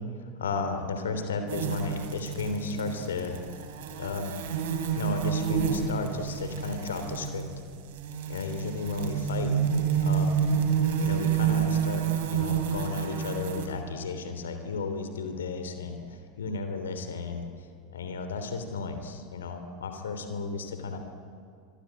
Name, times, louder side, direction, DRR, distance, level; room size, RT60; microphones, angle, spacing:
voice 1, 0.4-3.4 4.0-4.4 4.9-7.4 8.3-9.5 10.0-10.4 11.0-12.1 12.3-17.4 17.9-21.0, left 4 dB, 75° left, 7 dB, 3.3 m, -33 dB
sound 1, 1.5-13.7, right 7 dB, 65° right, 3.7 m, -29 dB
26.5 x 23.0 x 9.1 m, 2.3 s
figure-of-eight pair, 85°, 0 cm